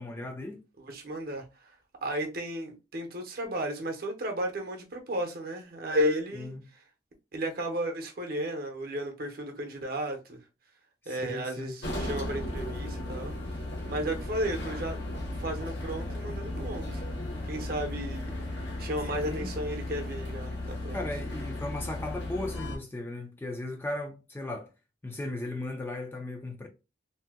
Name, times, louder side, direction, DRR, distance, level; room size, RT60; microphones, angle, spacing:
voice 1, 0.0-0.6 6.3-6.6 11.0-11.7 19.2-19.5 20.9-24.7 25.0-26.7, left 2 dB, 10° left, 0.3 m, -36 dB
voice 2, 0.8-1.7 2.0-6.5 7.3-10.4 11.1-13.3 13.9-15.0 15.4-17.0 17.5-18.3 18.8-21.0, equal, 50° right, 0.7 m, -33 dB
sound 1, 11.8-22.8, left 1 dB, 70° left, 1.0 m, -35 dB
2.7 x 2.1 x 3.4 m
head